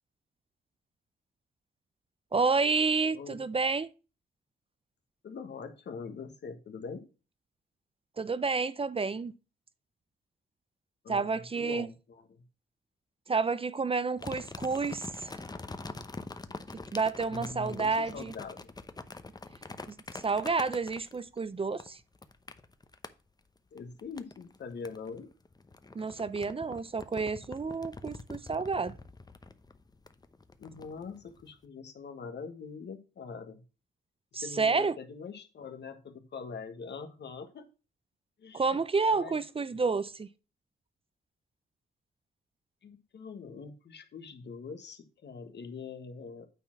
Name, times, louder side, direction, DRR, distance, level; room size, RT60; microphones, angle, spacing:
voice 1, 2.3-3.9 8.2-9.3 11.1-11.9 13.3-15.4 16.9-18.3 19.9-22.0 25.9-29.0 34.3-35.0 38.5-40.3, right 4 dB, 30° right, 0.5 m, -30 dB
voice 2, 3.1-3.5 5.2-7.0 11.0-12.4 17.3-18.7 23.7-25.3 30.6-33.6 34.3-37.7 38.4-38.8 39.0-39.4 39.8-39.9 42.8-46.5, left 5 dB, 65° left, 1.5 m, -43 dB
sound 1, 14.2-21.4 21.8-23.1 23.8-24.6 24.8-31.5, left 3 dB, 20° left, 0.8 m, -45 dB
9.0 x 4.4 x 5.8 m
cardioid pair, 85°, 19 cm